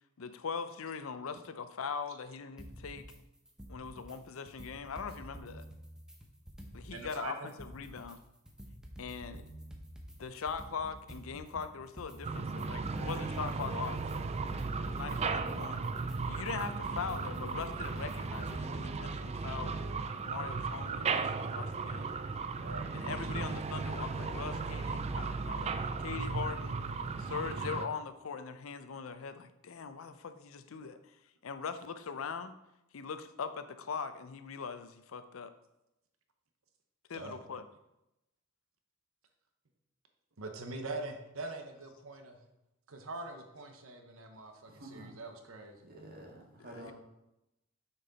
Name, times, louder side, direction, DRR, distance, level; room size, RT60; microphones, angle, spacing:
voice 1, 0.2-3.1 3.7-5.7 6.7-8.2 9.0-9.4 10.2-14.0 14.8-15.9 16.2-19.8 20.3-22.1 22.9-26.8 27.2-31.0 31.4-32.5 32.9-35.5 37.1-37.6 46.6-46.9, left 5 dB, 80° left, 11 dB, 0.5 m, -41 dB
sound 1, 2.6-3.2 3.5-4.2 4.5-7.2 7.5-18.6, equal, 5° right, 0.8 m, -49 dB
voice 2, 6.9-7.5 15.1-15.3 22.6-22.9 37.1-37.4 40.4-42.4 42.9-45.8, right 2 dB, 85° right, 5 dB, 0.9 m, -43 dB
sound 2, 12.2-27.9, right 4 dB, 30° right, 0.4 m, -36 dB
voice 3, 44.7-45.1 45.9-46.9, right 1 dB, 45° right, -1 dB, 1.8 m, -49 dB
6.4 x 5.9 x 4.0 m, 0.89 s
head